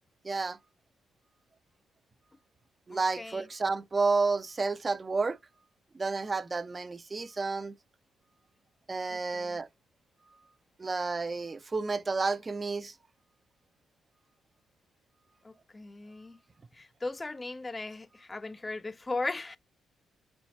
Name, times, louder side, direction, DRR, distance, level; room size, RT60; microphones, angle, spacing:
voice 1, 0.2-0.6 2.9-5.4 5.9-7.7 8.9-9.7 10.8-12.9, right 4 dB, 35° right, 0.5 m, -30 dB
voice 2, 2.9-3.4 9.1-9.6 15.4-16.4 16.8-19.6, left 3 dB, 25° left, 0.4 m, -38 dB
4.4 x 4.0 x 2.8 m
hypercardioid pair, 45°, 0 cm